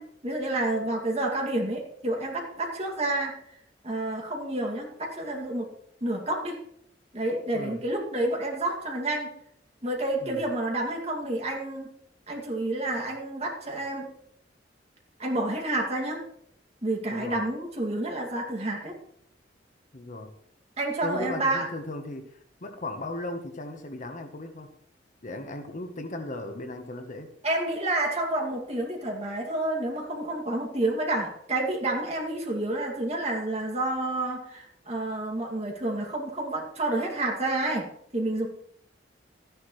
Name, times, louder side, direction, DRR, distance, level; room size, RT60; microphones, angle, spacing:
voice 1, 0.0-3.4 3.8-5.7 6.0-6.6 7.1-9.3 9.8-11.9 12.3-14.1 15.2-16.2 16.8-18.9 20.8-21.7 27.4-37.9 38.1-38.5, right 2 dB, 35° right, 0 dB, 2.4 m, -29 dB
voice 2, 7.5-7.9 10.2-10.4 17.1-17.4 19.9-20.3 21.0-24.7 25.2-27.3, left 1 dB, 45° left, 6 dB, 1.1 m, -37 dB
13.5 x 10.5 x 3.2 m, 0.70 s
head